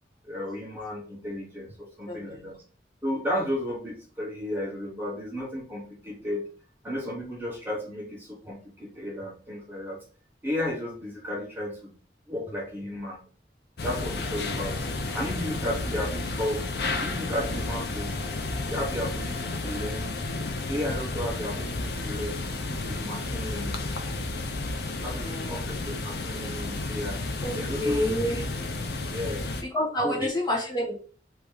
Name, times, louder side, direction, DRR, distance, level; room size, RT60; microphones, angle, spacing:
voice 1, 0.2-2.6 3.0-6.5 6.8-10.0 10.4-11.9 12.3-13.2 13.8-14.9 15.1-18.2 18.7-20.1 20.7-22.4 22.7-23.8 25.0-27.2 27.5-28.0 29.1-29.4 30.0-30.3, left 1 dB, 10° right, -3 dB, 1.2 m, -33 dB
voice 2, 2.1-2.5 25.2-25.6 27.4-28.4 28.7-29.1 29.7-30.9, equal, 25° left, -2 dB, 1.3 m, -29 dB
sound 1, 13.8-29.6, left 2 dB, 65° left, 0.6 m, -32 dB
3.6 x 3.0 x 4.8 m, 0.41 s
head